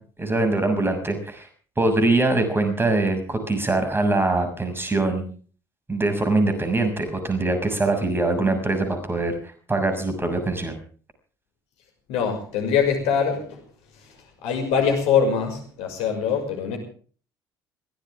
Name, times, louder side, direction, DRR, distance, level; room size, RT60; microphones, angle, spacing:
voice 1, 0.2-1.5 1.8-5.2 5.9-9.4 9.7-10.8, right 2 dB, 20° right, 7 dB, 6.5 m, -23 dB
voice 2, 12.1-13.6 14.0-14.1 14.4-16.8, left 6 dB, 65° left, 3 dB, 6.0 m, -23 dB
22.5 x 17.5 x 3.6 m, 0.43 s
hypercardioid pair, 55°, 11 cm